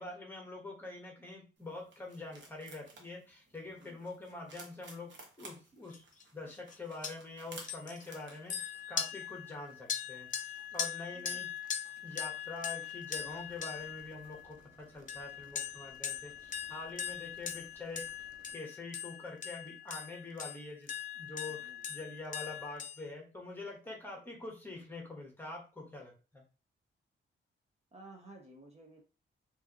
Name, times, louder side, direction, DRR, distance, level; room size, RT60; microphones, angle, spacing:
voice 1, 0.0-5.1 5.4-6.0 6.3-11.5 12.0-18.3 18.5-21.6 21.9-26.4, left 2 dB, 10° left, 0 dB, 1.2 m, -45 dB
sound 1, 1.6-14.4, right 3 dB, 65° right, 1.0 m, -58 dB
sound 2, 5.9-6.2 6.5-6.7 7.0-7.1 7.6-14.6 15.1-23.0, left 8 dB, 40° left, 0.5 m, -41 dB
voice 2, 11.1-11.5 21.3-21.9 23.8-24.2 27.9-29.0, right 2 dB, 30° right, 1 dB, 0.7 m, -55 dB
sound 3, 13.1-18.5, equal, 15° right, 1.3 m, -64 dB
4.8 x 2.6 x 2.9 m, 0.33 s
wide cardioid pair, 180°, 21 cm